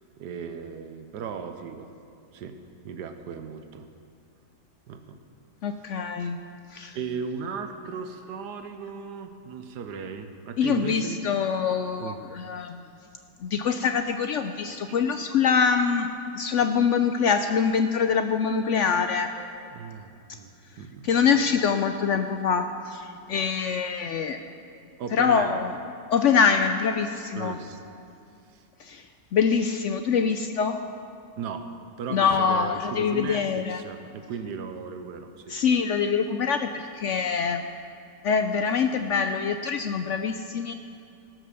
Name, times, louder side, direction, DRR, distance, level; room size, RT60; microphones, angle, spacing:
voice 1, 0.2-1.9 2.3-2.6 2.8-3.9 4.9-5.2 6.9-11.2 12.0-12.2 14.9-15.0 19.4-21.2 25.0-25.6 27.3-27.8 28.5-28.6 31.4-31.7 32.0-35.6, right 6 dB, 85° right, 8 dB, 1.4 m, -36 dB
voice 2, 5.6-6.4 6.7-7.0 10.6-12.8 13.4-16.1 16.3-19.3 21.0-24.4 25.1-25.8 26.1-27.6 28.8-29.0 29.3-30.8 32.1-33.8 35.5-37.6 38.2-40.7, left 6 dB, 75° left, 7 dB, 0.7 m, -24 dB
17.5 x 6.0 x 6.8 m, 2.5 s
omnidirectional pair, 1.7 m